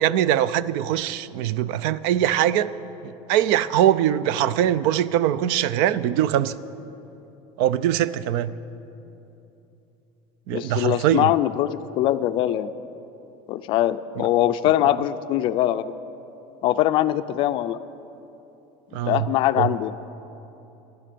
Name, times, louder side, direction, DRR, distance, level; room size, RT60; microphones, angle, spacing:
voice 1, 0.0-2.7 3.0-6.5 7.6-8.5 10.5-11.3 14.2-14.3 18.9-19.3 19.6-19.7, right 11 dB, 65° right, 17 dB, 0.5 m, -22 dB
voice 2, 10.5-12.7 13.5-15.9 16.6-17.8 19.0-19.9, left 13 dB, 40° left, 12 dB, 0.4 m, -22 dB
13.5 x 11.5 x 6.8 m, 2.9 s
cardioid pair, 165°, 13 cm